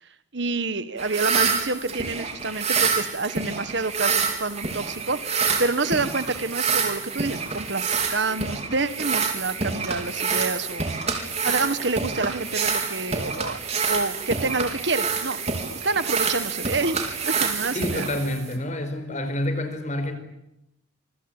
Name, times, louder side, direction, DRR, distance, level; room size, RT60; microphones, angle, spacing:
voice 1, 0.3-10.9 11.4-13.6 13.9-15.4 15.8-17.0 17.2-18.1, right 3 dB, 55° right, 12 dB, 1.6 m, -28 dB
sound 1, 1.0-18.6, right 5 dB, 30° right, 4.4 m, -27 dB
voice 2, 17.7-20.2, left 1 dB, 35° left, 9 dB, 4.8 m, -28 dB
27.0 x 24.5 x 8.9 m, 0.82 s
head